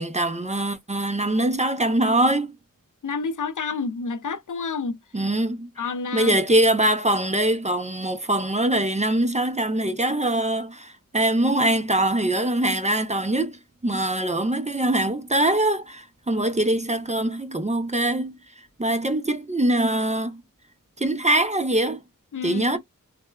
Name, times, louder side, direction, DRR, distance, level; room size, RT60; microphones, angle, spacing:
voice 1, 0.0-2.5 5.1-5.9 6.1-20.4 21.0-22.0 22.4-22.8, right 1 dB, 20° right, 0.4 m, -23 dB
voice 2, 3.0-5.0 5.8-6.3 22.3-22.8, left 4 dB, 65° left, 0.5 m, -29 dB
3.1 x 2.1 x 2.2 m
wide cardioid pair, 50°, 33 cm